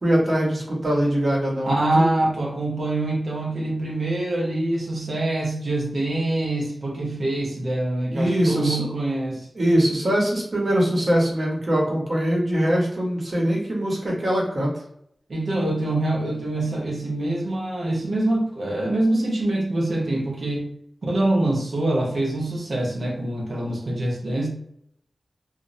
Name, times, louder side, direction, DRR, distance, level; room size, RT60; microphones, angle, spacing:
voice 1, 0.0-1.7 8.1-8.9 9.5-14.7, equal, 60° right, -3 dB, 1.0 m, -22 dB
voice 2, 1.7-9.5 15.3-20.7 21.0-24.5, right 1 dB, 75° right, -2 dB, 0.6 m, -25 dB
2.4 x 2.0 x 2.5 m, 0.72 s
cardioid pair, 45°, 0 cm